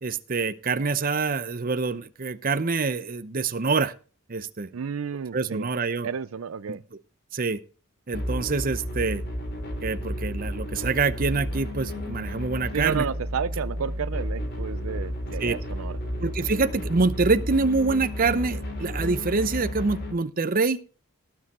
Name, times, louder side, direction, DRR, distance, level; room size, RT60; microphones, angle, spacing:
voice 1, 0.0-3.9 4.3-4.7 5.3-6.1 6.7-6.8 7.3-7.6 8.1-9.2 9.8-13.1 15.4-15.5 16.2-20.8, right 4 dB, 40° right, 0.7 m, -25 dB
voice 2, 4.7-5.7 6.0-6.8 12.7-16.0, right 6 dB, 70° right, 0.5 m, -31 dB
sound 1, 8.1-20.1, equal, 50° left, 3.6 m, -32 dB
18.5 x 6.8 x 4.3 m
head